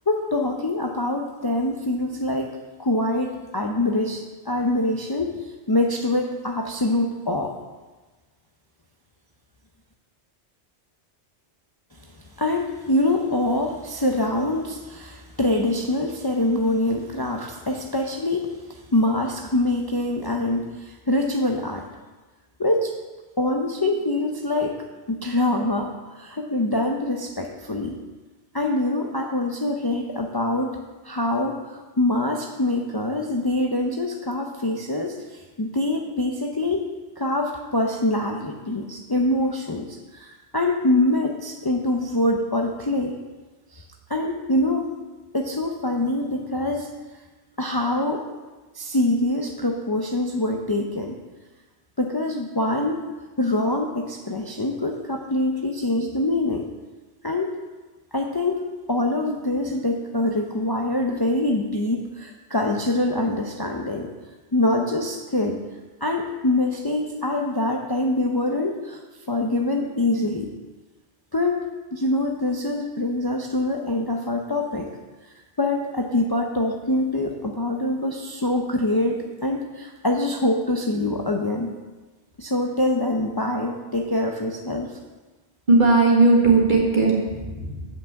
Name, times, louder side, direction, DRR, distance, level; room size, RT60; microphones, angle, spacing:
voice 1, 0.1-5.4 5.7-7.5 12.4-21.8 22.6-23.0 23.4-24.8 25.1-28.0 28.5-36.9 37.2-43.2 43.7-43.8 44.1-44.9 45.3-46.9 47.6-48.2 48.7-51.2 52.0-53.0 53.4-56.7 57.2-57.6 58.1-64.1 64.5-65.6 66.0-69.0 69.3-70.5 71.3-74.9 75.6-81.7 82.4-85.0, left 1 dB, 25° left, 1 dB, 0.6 m, -24 dB
voice 2, 85.7-87.9, right 3 dB, 45° right, -2 dB, 1.9 m, -17 dB
7.7 x 5.9 x 7.1 m, 1.2 s
omnidirectional pair, 1.2 m